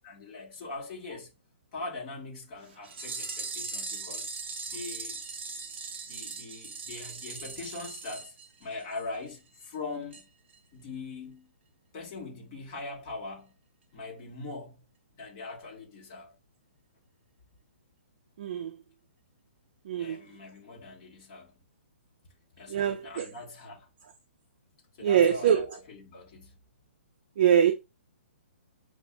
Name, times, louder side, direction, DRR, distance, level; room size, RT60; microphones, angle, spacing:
voice 1, 0.0-1.3 1.7-4.3 4.7-5.2 6.0-8.3 8.6-10.3 10.7-11.5 11.9-13.6 13.9-14.8 15.1-16.3 19.9-21.6 22.6-23.9 25.0-26.6, left 3 dB, 25° left, 1.3 m, -41 dB
sound 1, 2.8-9.0 9.3-9.4 9.6-9.7 10.1-10.2 10.5-10.6, right 4 dB, 55° right, 1.1 m, -39 dB
voice 2, 18.4-18.8 19.9-20.2 22.7-23.3 25.0-25.8 27.4-27.7, right 9 dB, 40° right, 0.4 m, -24 dB
7.0 x 2.5 x 2.2 m
hypercardioid pair, 170°, 7 cm